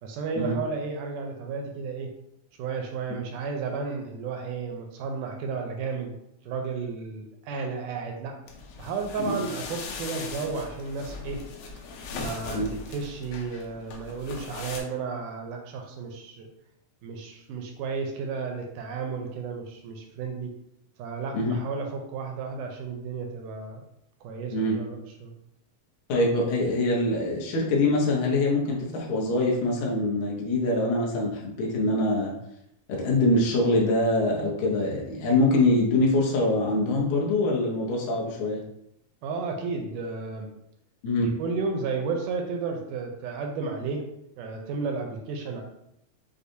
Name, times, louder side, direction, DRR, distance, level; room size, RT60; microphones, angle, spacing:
voice 1, 0.0-2.1 2.6-6.1 6.4-8.3 8.8-11.4 12.1-16.5 17.0-20.5 21.0-23.8 24.2-25.3 39.2-40.5 41.2-44.0 44.4-45.6, right 4 dB, 80° right, 2 dB, 1.8 m, -33 dB
sound 1, 8.5-14.8, left 4 dB, 90° left, 2.5 m, -39 dB
voice 2, 26.1-32.3 32.9-38.6 41.0-41.3, left 2 dB, 70° left, -3 dB, 1.9 m, -24 dB
6.4 x 2.3 x 2.7 m, 0.80 s
omnidirectional pair, 4.1 m